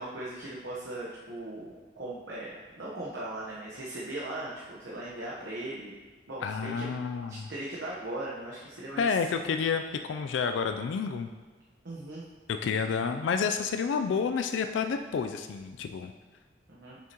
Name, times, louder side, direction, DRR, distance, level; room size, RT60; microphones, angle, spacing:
voice 1, 0.0-5.9 6.3-6.9 7.3-9.2 11.8-12.3 12.7-12.9 16.7-17.0, right 1 dB, 75° right, -6 dB, 1.0 m, -39 dB
voice 2, 6.4-7.4 9.0-11.3 12.5-16.1, left 5 dB, 85° left, 7 dB, 0.3 m, -29 dB
7.3 x 6.2 x 2.9 m, 1.3 s
head